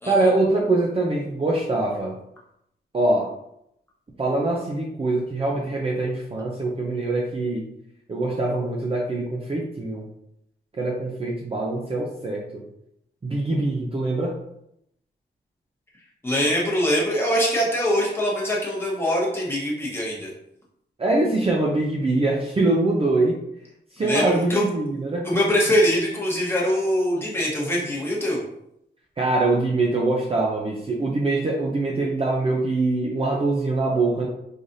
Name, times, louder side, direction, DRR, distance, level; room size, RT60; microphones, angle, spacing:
voice 1, 0.1-2.1 2.9-3.3 4.2-7.7 8.1-10.1 10.8-12.6 13.2-14.3 21.0-23.4 23.9-25.3 29.2-34.3, right 2 dB, 30° right, -2 dB, 0.5 m, -23 dB
voice 2, 16.2-20.3 24.0-24.6 25.2-28.4, equal, 10° left, -4 dB, 1.1 m, -23 dB
3.9 x 3.2 x 2.6 m, 0.77 s
wide cardioid pair, 135°, 20 cm